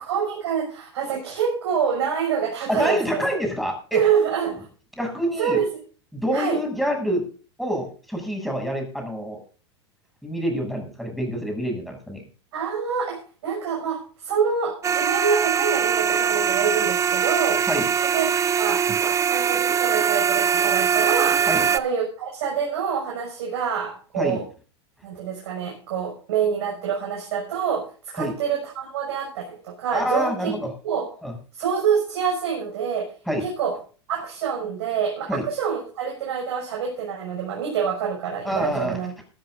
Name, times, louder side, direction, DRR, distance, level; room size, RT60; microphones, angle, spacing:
voice 1, 0.0-3.2 3.9-4.7 5.4-5.7 6.3-6.6 12.5-17.6 18.1-18.3 18.6-21.5 21.7-24.4 25.0-30.5 30.8-31.1 31.5-33.1 33.4-33.7 34.1-39.1, right 7 dB, 65° right, -1 dB, 6.4 m, -26 dB
voice 2, 2.7-4.0 5.0-5.6 6.1-7.3 7.6-9.4 10.2-12.2 17.7-17.9 21.5-21.7 24.2-24.4 28.2-28.4 29.9-30.7 31.2-31.3 33.3-33.5 35.3-35.5 38.4-39.0, equal, ahead, 2 dB, 7.5 m, -26 dB
sound 1, 14.8-21.8, right 7 dB, 20° right, 0.7 m, -22 dB
20.5 x 14.0 x 2.6 m, 0.39 s
hypercardioid pair, 100°, 14 cm